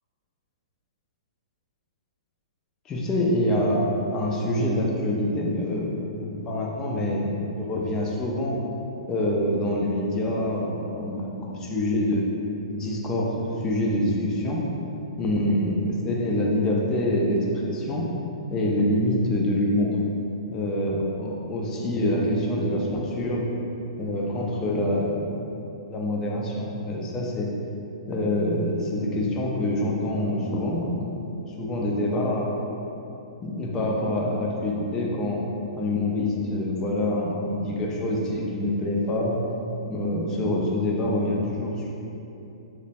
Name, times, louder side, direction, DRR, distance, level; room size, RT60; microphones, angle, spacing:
voice 1, 2.9-8.6 9.1-12.2 12.7-14.6 15.2-18.1 18.5-20.0 20.5-23.5 24.0-25.3 25.9-27.5 28.1-31.1 31.6-32.5 33.4-35.4 35.8-39.4 39.9-41.9, left 1 dB, 15° left, -2 dB, 0.3 m, -26 dB
3.1 x 2.1 x 4.1 m, 2.9 s
hypercardioid pair, 165°, 3 cm